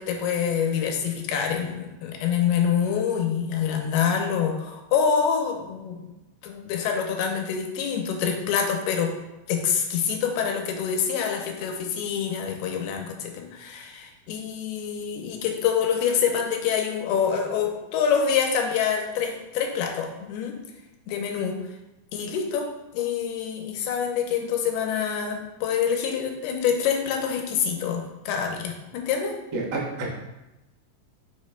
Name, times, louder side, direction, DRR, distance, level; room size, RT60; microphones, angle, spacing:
voice 1, 0.0-6.1 6.4-9.1 9.5-20.6 21.1-21.6 22.1-29.4, left 7 dB, 85° left, 3 dB, 2.7 m, -26 dB
voice 2, 29.5-30.1, right 3 dB, 75° right, -4 dB, 1.1 m, -29 dB
8.2 x 6.1 x 2.2 m, 1.0 s
omnidirectional pair, 4.4 m